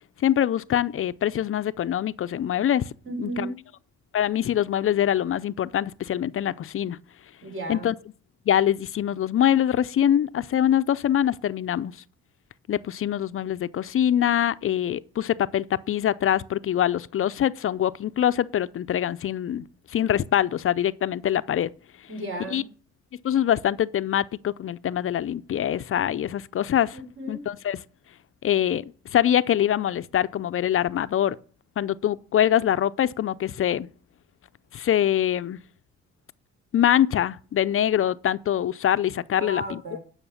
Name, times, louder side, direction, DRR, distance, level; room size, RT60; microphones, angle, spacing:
voice 1, 0.2-2.9 3.2-3.5 4.1-7.0 7.7-7.9 8.5-11.9 12.7-21.7 22.5-22.6 23.2-27.0 27.3-27.8 28.4-31.4 31.8-33.9 34.7-35.6 36.7-39.8, left 10 dB, 45° left, 0.5 m, -24 dB
voice 2, 3.0-3.6 7.4-7.9 22.1-22.7 26.9-27.4 39.3-40.0, right 1 dB, 40° right, 4.9 m, -34 dB
11.5 x 5.8 x 7.0 m
cardioid pair, 90°, 30 cm